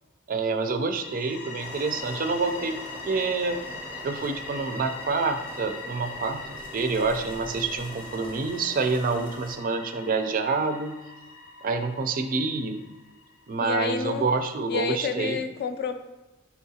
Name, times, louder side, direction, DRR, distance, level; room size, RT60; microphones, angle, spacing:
voice 1, 0.3-10.9 11.6-12.8 13.5-15.4, right 4 dB, 40° right, 7 dB, 0.4 m, -27 dB
sound 1, 0.9-13.6, left 3 dB, 75° left, 0.7 m, -41 dB
sound 2, 1.6-9.6, equal, 5° left, 0.6 m, -44 dB
voice 2, 13.6-14.3 14.7-15.9, left 5 dB, 50° left, 8 dB, 0.3 m, -29 dB
4.6 x 4.1 x 2.8 m, 1.1 s
head